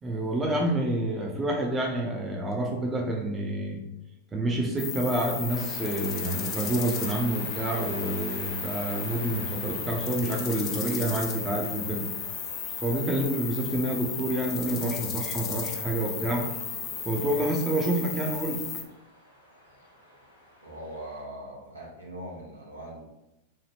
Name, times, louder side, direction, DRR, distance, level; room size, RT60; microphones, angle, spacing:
voice 1, 0.0-3.8 4.3-12.0 12.8-16.5 17.1-18.6, right 1 dB, 15° right, 0 dB, 0.6 m, -28 dB
sound 1, 4.8-18.8, left 7 dB, 35° left, 0.4 m, -35 dB
sound 2, 5.5-21.2, left 1 dB, 70° left, 0.8 m, -48 dB
voice 2, 20.6-23.0, right 1 dB, 85° right, -5 dB, 0.8 m, -41 dB
2.8 x 2.3 x 3.2 m, 0.92 s
figure-of-eight pair, 90°, 0 cm